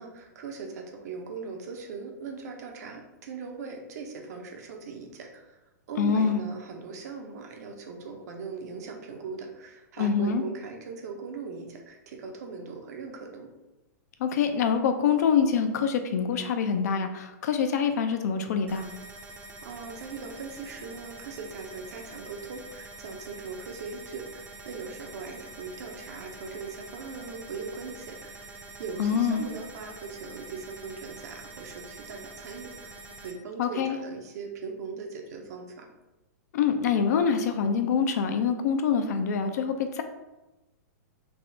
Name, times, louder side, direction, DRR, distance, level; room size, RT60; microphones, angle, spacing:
voice 1, 0.0-5.6 5.9-13.5 19.6-35.9, right 4 dB, 65° right, 3 dB, 0.6 m, -40 dB
voice 2, 6.0-6.4 10.0-10.4 14.2-18.9 29.0-29.4 33.6-34.0 36.5-40.0, left 6 dB, 65° left, 7 dB, 0.4 m, -25 dB
sound 1, 18.7-33.3, right 2 dB, 20° right, 0.5 m, -46 dB
3.4 x 2.0 x 2.6 m, 1.0 s
hypercardioid pair, 125°, 9 cm